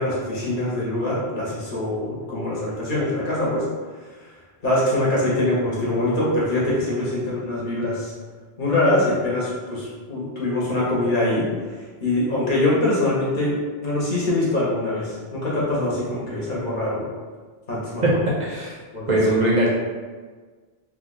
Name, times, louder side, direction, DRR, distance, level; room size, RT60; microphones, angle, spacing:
voice 1, 0.0-3.7 4.2-4.3 4.6-8.1 8.6-11.5 12.0-17.1 17.7-18.2 18.9-19.2, left 1 dB, 55° left, -6 dB, 1.0 m, -23 dB
voice 2, 18.4-18.7 19.1-19.7, right 1 dB, 50° right, -4 dB, 0.6 m, -20 dB
2.6 x 2.3 x 3.9 m, 1.4 s
omnidirectional pair, 1.1 m